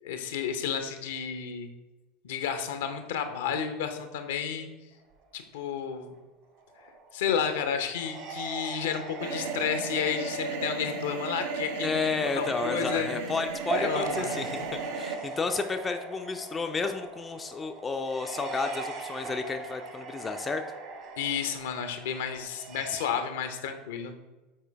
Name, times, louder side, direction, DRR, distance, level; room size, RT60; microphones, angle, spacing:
voice 1, 0.0-1.7 2.2-4.7 5.3-6.1 7.1-12.0 12.4-13.1 13.7-14.4 21.2-24.1, left 7 dB, 65° left, 7 dB, 0.6 m, -31 dB
sound 1, 5.0-5.3 6.1-6.2 6.6-23.0, right 4 dB, 50° right, 1.2 m, -40 dB
sound 2, 9.2-15.2, right 4 dB, 65° right, 0.7 m, -35 dB
voice 2, 11.8-20.6, left 4 dB, 20° left, 6 dB, 0.4 m, -32 dB
7.4 x 4.4 x 3.3 m, 1.2 s
figure-of-eight pair, 75°, 0 cm